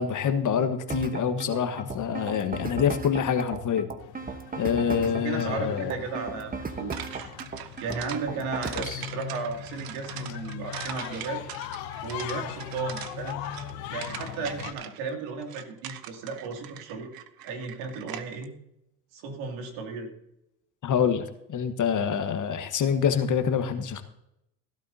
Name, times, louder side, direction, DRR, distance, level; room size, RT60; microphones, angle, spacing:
voice 1, 0.0-3.9 4.6-6.0 8.7-9.0 20.8-24.0, left 7 dB, 40° left, 8 dB, 1.4 m, -26 dB
sound 1, 0.9-8.9, right 4 dB, 15° right, 1.1 m, -36 dB
sound 2, 4.0-14.7, left 12 dB, 75° left, 1.1 m, -39 dB
voice 2, 5.0-7.3 7.8-11.4 12.0-13.5 13.9-17.1 17.4-18.5 19.1-20.1, right 4 dB, 70° right, 2 dB, 2.8 m, -35 dB
sound 3, 6.9-18.5, right 11 dB, 45° right, 1.0 m, -42 dB
16.5 x 12.0 x 2.8 m, 0.83 s
hypercardioid pair, 85°, 49 cm